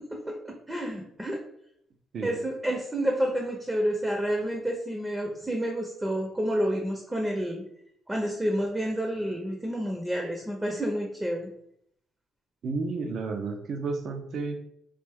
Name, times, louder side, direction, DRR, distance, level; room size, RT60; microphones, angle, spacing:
voice 1, 0.1-1.4 2.2-7.7 8.1-11.5, equal, 15° right, 1 dB, 0.6 m, -29 dB
voice 2, 12.6-14.6, right 4 dB, 65° right, 6 dB, 0.5 m, -32 dB
3.2 x 2.5 x 3.4 m, 0.71 s
cardioid pair, 90°, 0 cm